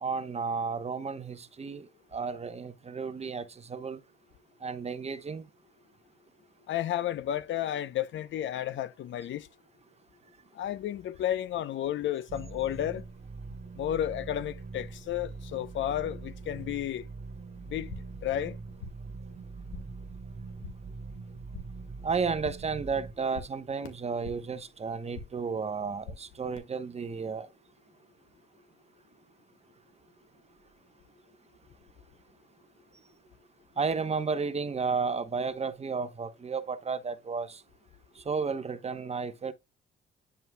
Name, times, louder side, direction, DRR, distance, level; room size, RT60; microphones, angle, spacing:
voice 1, 0.0-4.0 4.6-5.4 22.0-27.5 33.8-37.6 38.2-39.5, right 5 dB, 30° right, 1.0 m, -33 dB
voice 2, 6.7-9.5 10.5-13.0 13.8-17.0 17.7-17.9 18.2-18.6, left 11 dB, 70° left, 0.8 m, -32 dB
sound 1, 12.3-23.1, right 4 dB, 50° right, 1.5 m, -43 dB
sound 2, 17.7-18.3 18.5-19.2 19.4-20.1 20.3-20.9 21.2-21.9 22.2-22.8 23.1-24.6 24.9-25.5 25.8-26.6, left 4 dB, 90° left, 2.1 m, -47 dB
9.6 x 5.5 x 2.3 m
cardioid pair, 90°, 20 cm